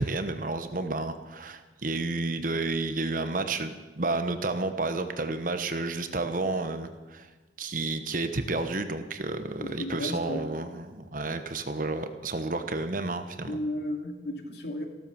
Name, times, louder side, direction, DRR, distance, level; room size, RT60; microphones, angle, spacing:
voice 1, 0.0-7.3 7.6-13.6, right 2 dB, 45° right, 9 dB, 1.1 m, -31 dB
voice 2, 9.6-10.5 13.5-14.9, left 1 dB, 60° left, 3 dB, 2.4 m, -34 dB
15.5 x 13.0 x 7.1 m, 1.2 s
head